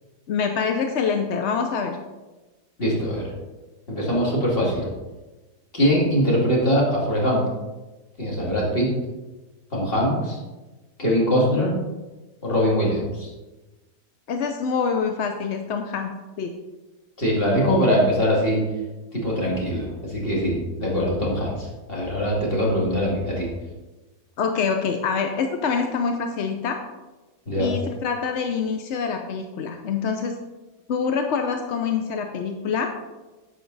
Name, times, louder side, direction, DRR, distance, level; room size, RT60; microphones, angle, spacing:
voice 1, 0.3-2.0 14.3-16.5 24.4-26.8 27.6-30.4 30.9-32.9, left 5 dB, 60° left, 5 dB, 0.7 m, -25 dB
voice 2, 2.8-3.3 3.9-4.9 5.7-7.4 8.2-8.9 9.7-10.4 11.0-11.7 12.4-13.3 17.2-18.6 19.1-23.5 27.5-27.7, equal, 35° left, -4 dB, 2.6 m, -22 dB
10.5 x 7.2 x 4.0 m, 1.2 s
omnidirectional pair, 1.8 m